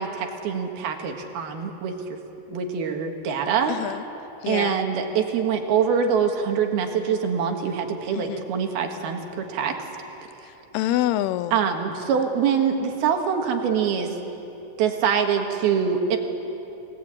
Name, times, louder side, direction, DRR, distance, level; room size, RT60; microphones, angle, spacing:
voice 1, 0.0-2.2 2.5-3.8 4.5-9.8 11.5-14.2 14.8-16.2, right 7 dB, 70° right, 4 dB, 3.5 m, -24 dB
voice 2, 3.7-4.0 4.4-4.8 8.1-8.5 10.4-11.6, left 14 dB, 80° left, 14 dB, 2.6 m, -27 dB
29.0 x 18.5 x 8.8 m, 3.0 s
omnidirectional pair, 4.7 m